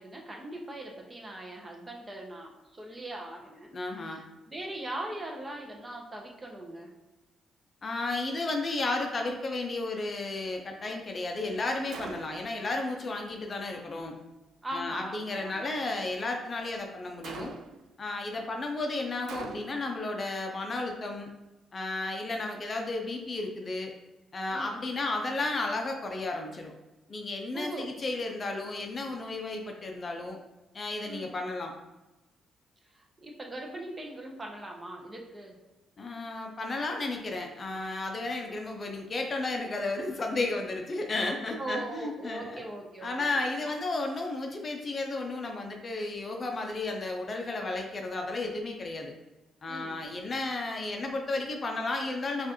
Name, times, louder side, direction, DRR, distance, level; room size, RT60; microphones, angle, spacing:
voice 1, 0.0-6.9 14.6-15.7 24.5-24.8 27.5-27.9 31.1-31.3 32.9-35.6 41.6-43.7 49.7-50.0, right 1 dB, 25° right, 0 dB, 0.8 m, -40 dB
voice 2, 3.7-4.2 7.8-14.1 14.7-17.5 18.0-21.3 21.7-23.9 24.3-26.7 27.1-30.4 30.7-31.7 36.0-42.7 43.0-49.1 49.6-52.5, left 2 dB, 35° left, 2 dB, 0.5 m, -33 dB
Gunshot gunfire, 11.9-12.6 17.2-17.9 19.3-20.0, right 5 dB, 75° right, 0.3 m, -42 dB
4.4 x 2.5 x 3.0 m, 1.0 s
cardioid pair, 90°, 0 cm